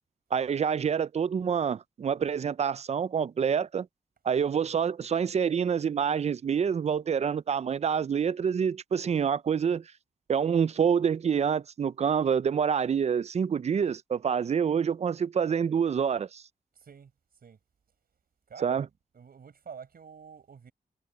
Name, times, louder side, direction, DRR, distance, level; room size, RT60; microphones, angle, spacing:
voice 1, 0.3-3.9 4.2-9.8 10.3-16.4 18.6-18.9, right 7 dB, 45° right, 0.4 m, -27 dB
voice 2, 16.8-17.1 17.4-17.6 18.5-18.9 19.1-20.7, right 6 dB, 80° right, 5.4 m, -48 dB
wide cardioid pair, 125°, 15 cm